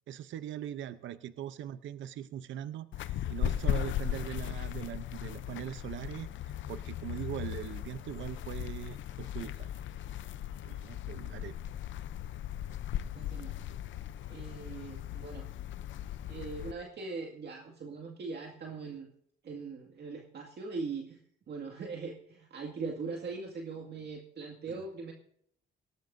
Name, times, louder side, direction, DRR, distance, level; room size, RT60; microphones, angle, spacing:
voice 1, 0.1-9.8 10.6-11.6 24.7-24.8, right 11 dB, 75° right, 13 dB, 0.7 m, -41 dB
sound 1, 2.9-16.7, left 11 dB, 70° left, 0.7 m, -37 dB
voice 2, 13.2-13.5 14.3-15.5 16.3-19.1 19.4-21.2 21.5-25.1, right 4 dB, 55° right, 1 dB, 2.1 m, -41 dB
18.5 x 18.0 x 2.7 m, 0.65 s
cardioid pair, 90°, 20 cm